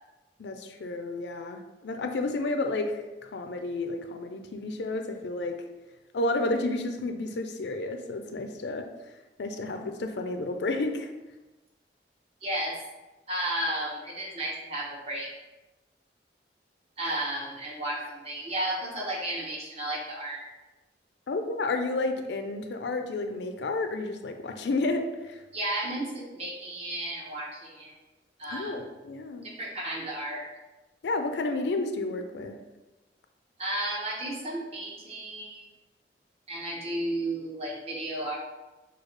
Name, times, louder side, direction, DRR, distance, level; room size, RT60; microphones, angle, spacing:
voice 1, 0.4-5.6 6.1-8.9 9.4-11.1 21.3-25.4 28.5-29.5 31.0-32.6, left 2 dB, 75° left, 6 dB, 0.4 m, -31 dB
voice 2, 12.4-12.8 13.3-15.3 17.0-20.4 25.5-28.0 28.4-28.8 29.4-30.5 33.6-35.7 36.5-38.4, right 1 dB, 35° right, -3 dB, 1.0 m, -33 dB
6.3 x 2.3 x 3.2 m, 1.1 s
head